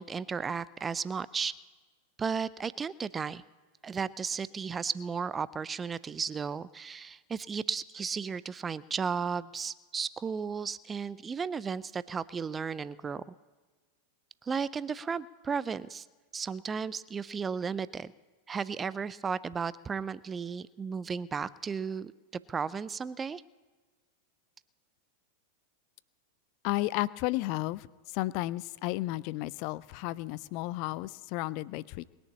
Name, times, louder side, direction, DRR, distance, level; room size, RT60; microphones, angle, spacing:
voice 1, 0.0-1.5 2.2-3.4 3.8-13.2 14.4-16.1 16.3-18.1 18.5-22.1 22.5-23.4, right 6 dB, 20° right, 19 dB, 0.4 m, -34 dB
voice 2, 26.6-27.9 28.1-32.0, left 18 dB, 45° left, 20 dB, 0.4 m, -33 dB
20.5 x 7.0 x 8.6 m, 1.3 s
figure-of-eight pair, 90°, 0 cm